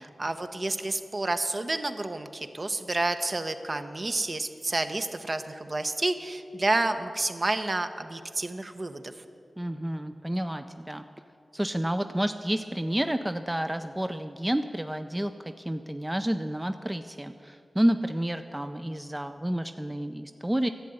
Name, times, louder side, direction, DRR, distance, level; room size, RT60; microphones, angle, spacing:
voice 1, 0.0-9.1, right 2 dB, 45° right, 8 dB, 0.8 m, -30 dB
voice 2, 9.6-11.0 11.5-20.7, right 1 dB, 15° right, 8 dB, 0.5 m, -30 dB
11.5 x 7.5 x 9.3 m, 2.6 s
cardioid pair, 50°, 0 cm